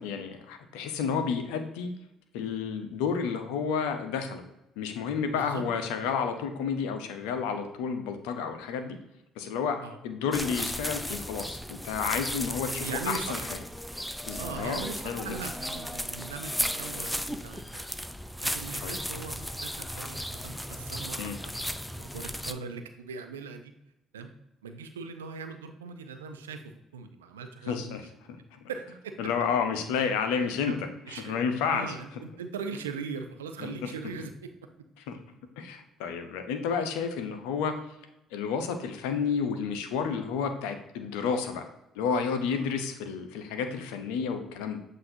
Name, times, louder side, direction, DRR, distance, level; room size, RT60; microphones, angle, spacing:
voice 1, 0.0-1.9 2.3-4.4 4.8-9.0 9.4-9.8 10.0-13.6 14.3-15.4 18.8-19.0 21.2-21.4 27.7-28.0 28.3-28.6 29.2-30.7 31.1-31.9 33.6-33.7 34.2-34.3 35.1-35.2 35.6-37.7 38.3-41.7 41.9-44.8, left 6 dB, 75° left, 7 dB, 0.6 m, -31 dB
voice 2, 5.3-5.6 9.8-10.0 12.8-13.5 14.4-17.8 18.4-23.7 24.1-24.3 24.6-28.0 28.7-29.1 30.3-30.8 31.1-31.4 31.7-34.3 42.5-42.6, right 5 dB, 85° right, 7 dB, 0.4 m, -40 dB
sound 1, 10.3-22.5, equal, ahead, 0.4 m, -35 dB
7.6 x 2.6 x 2.7 m, 0.87 s
hypercardioid pair, 55°, 0 cm